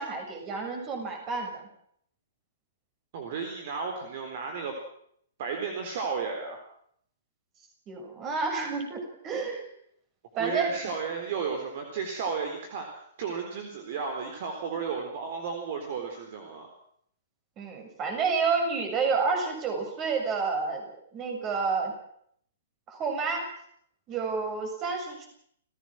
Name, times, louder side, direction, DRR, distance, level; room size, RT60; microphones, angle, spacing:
voice 1, 0.0-1.7 7.9-9.7 10.4-10.8 17.6-21.9 22.9-23.5 24.1-25.3, right 4 dB, 25° right, 4 dB, 6.9 m, -30 dB
voice 2, 3.1-4.8 5.4-6.6 10.4-12.9 13.2-16.7, right 5 dB, 45° right, 4 dB, 3.9 m, -33 dB
30.0 x 16.5 x 6.2 m, 0.67 s
figure-of-eight pair, 115°, 0 cm